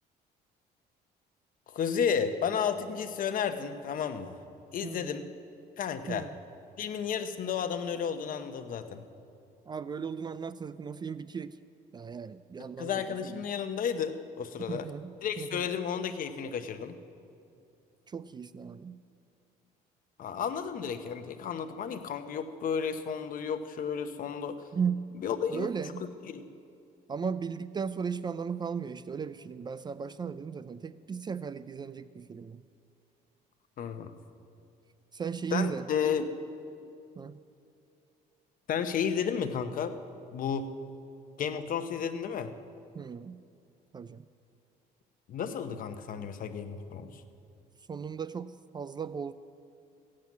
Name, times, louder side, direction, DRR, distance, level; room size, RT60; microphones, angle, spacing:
voice 1, 1.7-4.4 4.7-5.2 5.8-6.3 6.8-9.0 12.8-14.9 15.2-17.0 20.2-24.6 25.2-25.7 26.3-26.4 33.8-34.1 35.5-36.3 38.7-39.9 40.3-40.7 41.4-42.5 45.3-47.2, left 7 dB, 55° left, 9 dB, 0.9 m, -32 dB
voice 2, 4.8-5.3 6.1-6.4 9.7-11.6 11.9-13.4 14.7-15.7 18.1-19.0 24.7-25.1 25.5-26.1 27.1-32.6 35.1-35.9 37.2-37.4 42.9-43.4 43.9-44.2 47.9-49.3, right 6 dB, 25° right, 15 dB, 0.4 m, -36 dB
14.5 x 7.6 x 9.4 m, 2.6 s
cardioid pair, 110°, 17 cm